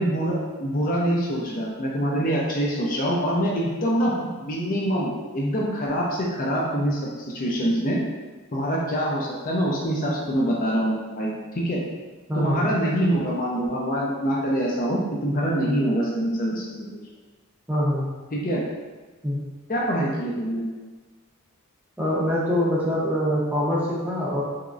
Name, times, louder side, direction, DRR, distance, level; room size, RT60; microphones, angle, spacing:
voice 1, 0.0-8.0 8.5-11.8 12.3-16.9 18.3-18.6 19.7-20.6, equal, 40° left, -3 dB, 0.5 m, -25 dB
voice 2, 12.3-12.6 17.7-18.1 19.2-19.4 22.0-24.4, equal, 10° right, -6 dB, 0.6 m, -24 dB
3.5 x 3.0 x 2.5 m, 1.3 s
head